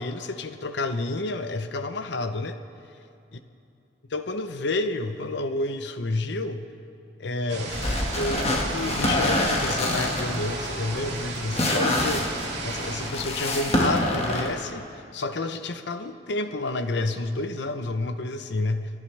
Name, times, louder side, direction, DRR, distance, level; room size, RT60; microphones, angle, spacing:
voice 1, 0.0-2.6 4.1-6.7 7.2-12.3 12.6-18.9, left 2 dB, 65° left, 9 dB, 0.7 m, -30 dB
sound 1, 7.5-13.1, right 2 dB, 60° right, 3.1 m, -34 dB
sound 2, 7.7-14.5, left 1 dB, 30° left, 1.6 m, -26 dB
29.5 x 11.0 x 3.3 m, 2.6 s
head